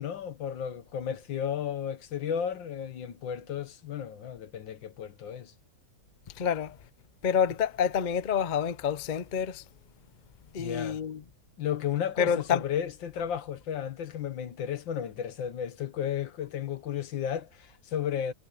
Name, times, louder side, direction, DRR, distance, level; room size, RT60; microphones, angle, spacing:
voice 1, 0.0-5.5 10.6-11.0 11.6-18.3, left 9 dB, 85° left, 1.9 m, -33 dB
voice 2, 6.4-6.8 7.2-9.6 10.5-11.2 12.2-12.7, left 7 dB, 55° left, 0.5 m, -28 dB
omnidirectional pair, 2.0 m